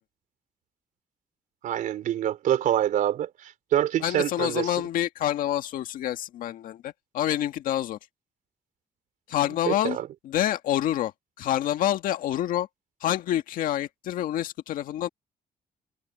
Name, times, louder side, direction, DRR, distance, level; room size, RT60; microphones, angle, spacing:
voice 1, 1.6-4.7 9.7-10.1, right 11 dB, 75° right, 3.8 m, -26 dB
voice 2, 4.0-8.0 9.3-10.0 10.2-11.1 11.4-12.7 13.0-15.1, left 12 dB, 90° left, 1.7 m, -27 dB
cardioid pair, 165°, 14 cm